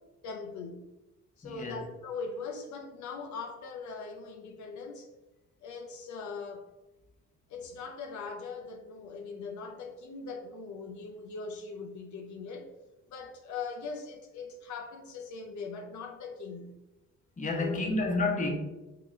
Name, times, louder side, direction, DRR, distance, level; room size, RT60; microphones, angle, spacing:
voice 1, 0.2-0.9 1.4-5.1 5.6-6.7 7.5-12.7 13.1-16.8 17.5-17.8, left 4 dB, 70° left, 0.6 m, -41 dB
voice 2, 1.4-1.8 17.4-18.5, left 2 dB, 25° left, 0.9 m, -30 dB
3.8 x 3.7 x 3.1 m
cardioid pair, 90°, 30 cm